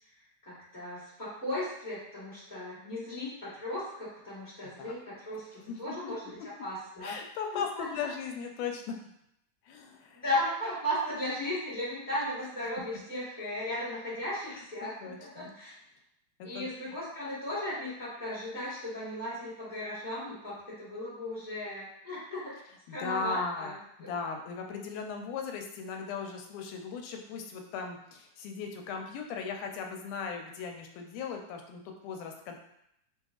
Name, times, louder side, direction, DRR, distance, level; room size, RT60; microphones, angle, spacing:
voice 1, 0.4-7.2 7.5-8.1 10.2-15.7 16.4-22.6 22.9-23.7 24.0-24.1, left 1 dB, 70° left, -11 dB, 0.4 m, -36 dB
voice 2, 5.6-6.1 7.0-9.0 9.7-10.2 14.5-14.6 15.0-15.5 16.4-16.7 22.9-23.8 24.1-32.6, left 5 dB, 85° left, 3 dB, 2.1 m, -37 dB
5.5 x 2.6 x 2.3 m, 0.77 s
omnidirectional pair, 3.6 m